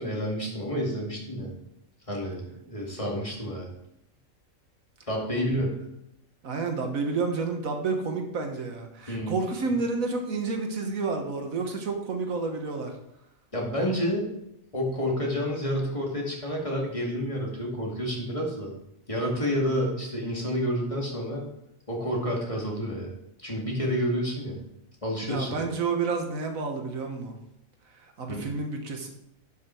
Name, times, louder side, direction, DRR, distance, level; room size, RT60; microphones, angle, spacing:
voice 1, 0.0-1.5 2.1-3.7 5.1-5.8 9.1-9.4 13.5-14.3 14.7-18.7 19.1-21.5 21.9-23.1 23.4-24.6 25.0-25.7 28.3-28.5, equal, 25° left, -2 dB, 2.2 m, -29 dB
voice 2, 6.4-12.9 25.2-27.3 28.2-29.1, right 4 dB, 90° right, 4 dB, 1.7 m, -30 dB
11.5 x 5.9 x 4.5 m, 0.82 s
omnidirectional pair, 1.4 m